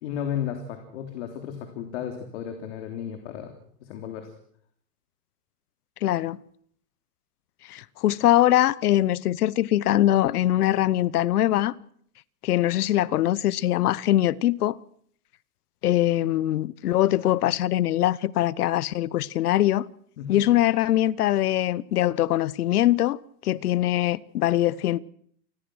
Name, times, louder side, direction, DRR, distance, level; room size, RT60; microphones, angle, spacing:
voice 1, 0.0-3.5 3.8-4.3 20.2-20.4, left 9 dB, 45° left, 3.4 m, -34 dB
voice 2, 6.0-6.4 7.7-11.7 12.4-14.8 15.8-19.9 20.3-23.2 23.4-25.0, left 13 dB, 70° left, 1.0 m, -22 dB
28.5 x 20.5 x 6.4 m
supercardioid pair, 175°, 47 cm